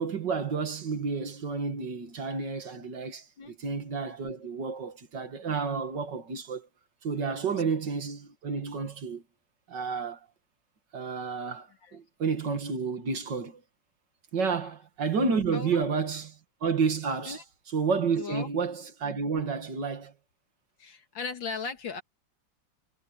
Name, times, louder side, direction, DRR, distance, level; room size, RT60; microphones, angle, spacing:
voice 1, 0.0-6.7 7.0-9.2 9.7-10.2 10.9-13.6 14.3-17.4 17.7-20.1, right 5 dB, 65° right, 2.5 m, -30 dB
voice 2, 15.5-15.8 17.2-17.4 18.2-18.5 20.8-22.0, left 5 dB, 80° left, 2.8 m, -38 dB
omnidirectional pair, 2.1 m